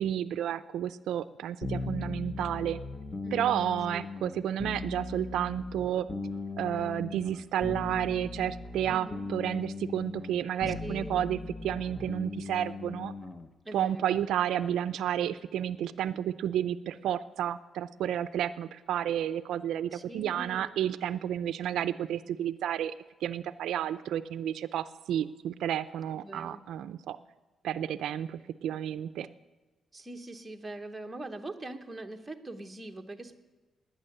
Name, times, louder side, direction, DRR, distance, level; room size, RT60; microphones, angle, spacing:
voice 1, 0.0-2.8 3.3-6.1 6.6-13.1 13.7-22.9 23.2-27.2 27.6-29.3, right 10 dB, 85° right, 13 dB, 0.4 m, -31 dB
sound 1, 1.6-13.5, left 3 dB, 20° left, 0.7 m, -38 dB
voice 2, 3.2-3.6 3.9-4.0 8.9-9.2 10.8-11.2 13.6-14.2 19.9-20.7 26.2-26.6 29.9-33.4, right 2 dB, 10° right, 3 dB, 0.9 m, -42 dB
20.0 x 9.3 x 6.6 m, 1.2 s
cardioid pair, 160°, 0 cm